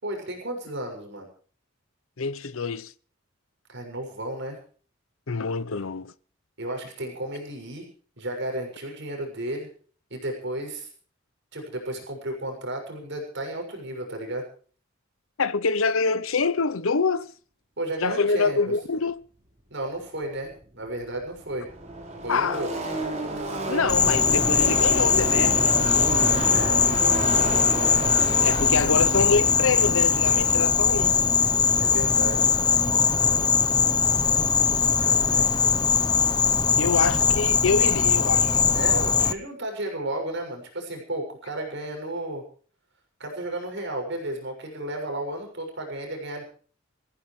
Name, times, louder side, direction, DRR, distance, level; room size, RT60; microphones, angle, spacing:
voice 1, 0.0-1.3 3.7-4.6 6.6-7.9 8.2-9.7 10.1-10.9 11.5-14.4 17.8-18.7 19.7-21.7 22.2-22.7 26.5-27.4 31.8-32.5 35.0-35.5 38.7-42.4 43.2-46.4, right 1 dB, 60° right, 6.6 m, -33 dB
voice 2, 2.2-2.9 5.3-6.1 15.4-17.3 18.0-19.2 22.3-22.6 23.7-25.7 28.4-31.2 36.8-38.6, left 4 dB, 85° left, 0.8 m, -25 dB
Car passing by / Race car auto racing, 20.6-20.7 20.9-31.5, right 2 dB, 35° right, 4.4 m, -31 dB
Insect, 23.9-39.3, left 6 dB, 20° left, 0.8 m, -21 dB
25.0 x 15.5 x 3.3 m
head